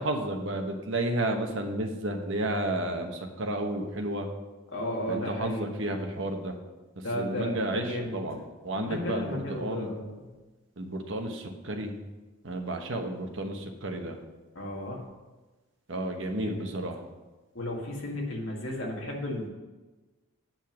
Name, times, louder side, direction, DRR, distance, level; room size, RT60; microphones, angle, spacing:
voice 1, 0.0-4.3 5.1-6.5 7.1-9.9 10.8-12.0 12.4-14.2 15.9-17.1, right 1 dB, 60° right, 3 dB, 1.1 m, -32 dB
voice 2, 4.7-5.7 7.0-8.2 8.7-10.3 14.6-15.0 16.4-16.7 17.6-19.5, left 1 dB, 65° left, -1 dB, 1.9 m, -34 dB
8.9 x 5.4 x 6.2 m, 1.2 s
head